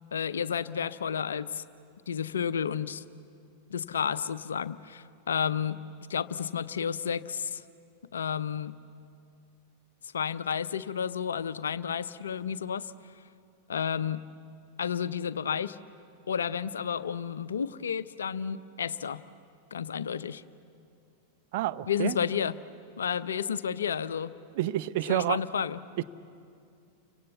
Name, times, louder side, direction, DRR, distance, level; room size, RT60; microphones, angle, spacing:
voice 1, 0.1-1.6 2.1-3.0 3.7-5.8 6.1-7.6 8.1-8.7 10.1-12.9 13.7-14.2 14.8-15.8 16.3-19.2 19.7-20.4 21.9-22.6 23.0-24.3 25.1-25.8, left 7 dB, 65° left, 15 dB, 0.7 m, -31 dB
voice 2, 21.5-22.2 24.5-25.4 26.0-26.1, right 14 dB, 50° right, 12 dB, 0.7 m, -29 dB
30.0 x 24.0 x 8.2 m, 2.4 s
figure-of-eight pair, 90°, 0 cm